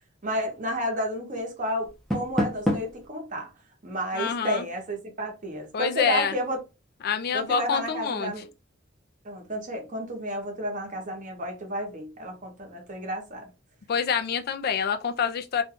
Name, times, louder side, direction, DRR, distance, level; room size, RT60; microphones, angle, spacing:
voice 1, 0.2-3.5 3.8-6.6 7.3-8.4 9.2-13.5, equal, 40° right, 1.0 m, -31 dB
Door, 1.8-3.1, equal, ahead, 0.6 m, -28 dB
voice 2, 4.1-4.6 5.7-6.3 7.0-8.3 13.9-15.6, left 7 dB, 55° left, 0.4 m, -26 dB
2.6 x 2.3 x 3.5 m
head